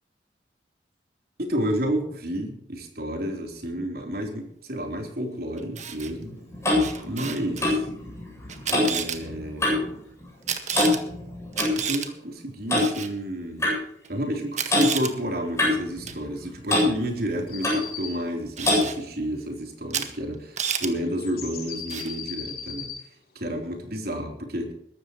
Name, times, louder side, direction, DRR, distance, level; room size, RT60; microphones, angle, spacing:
voice 1, 1.4-6.4 7.0-7.9 8.7-9.9 11.7-13.7 14.1-22.9 23.4-24.7, equal, 60° right, 2 dB, 3.6 m, -30 dB
Camera, 5.6-6.1 6.8-7.6 8.5-9.2 10.5-11.0 11.5-12.1 12.8-13.1 14.1-14.2 14.5-15.1 16.1-16.2 18.6-19.0 19.9-20.1 20.3-20.9 21.9-22.2, right 7 dB, 45° right, 1.6 m, -30 dB
Clock, 6.1-10.0 10.2-10.5 10.7-11.8 12.7-12.9 13.6-13.8 14.7-14.9 15.6-16.4 16.7-16.9 17.6-17.9 18.6-18.9, left 2 dB, 15° left, 7.7 m, -24 dB
sound 1, 17.5-18.2 21.2-23.0, left 7 dB, 60° left, 7.0 m, -37 dB
21.5 x 13.0 x 3.1 m, 0.73 s
head